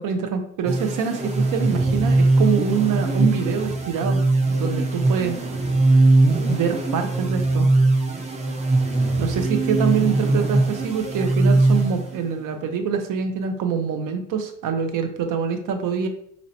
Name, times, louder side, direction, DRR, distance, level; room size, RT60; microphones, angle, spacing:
voice 1, 0.0-4.2 4.6-5.4 6.5-7.7 9.2-16.1, right 7 dB, 70° right, 7 dB, 0.6 m, -25 dB
sound 1, 0.6-12.4, right 2 dB, 20° right, 0.5 m, -20 dB
4.3 x 2.6 x 2.7 m, 0.64 s
cardioid pair, 150°, 33 cm